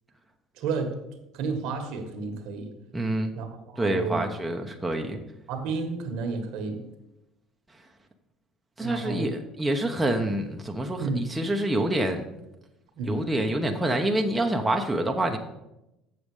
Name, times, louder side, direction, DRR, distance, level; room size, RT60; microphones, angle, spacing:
voice 1, 0.6-1.0 1.4-2.7 3.4-4.2 5.5-6.8 8.8-9.3 11.0-11.2 13.0-13.2, right 4 dB, 75° right, 1.5 m, -31 dB
voice 2, 2.9-3.3 3.8-5.2 8.8-12.2 13.1-15.4, right 1 dB, 10° right, 0.9 m, -27 dB
7.8 x 7.3 x 4.9 m
supercardioid pair, 105°, 0 cm